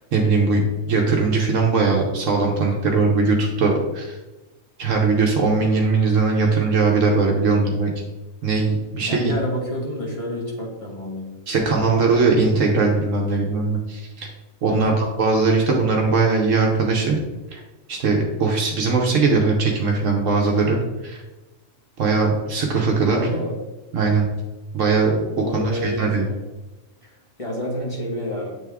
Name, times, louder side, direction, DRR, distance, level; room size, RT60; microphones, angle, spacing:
voice 1, 0.1-4.2 4.8-7.9 8.4-9.3 11.5-14.3 14.6-17.2 17.5-17.6 17.9-21.2 22.0-23.2 23.9-24.3 24.7-26.3, right 4 dB, 75° right, 0 dB, 1.2 m, -20 dB
voice 2, 9.0-11.3 14.7-15.0 23.0-23.6 25.3-26.4 27.0-28.6, left 1 dB, 25° left, -5 dB, 1.7 m, -29 dB
8.3 x 3.5 x 3.5 m, 1.1 s
omnidirectional pair, 1.3 m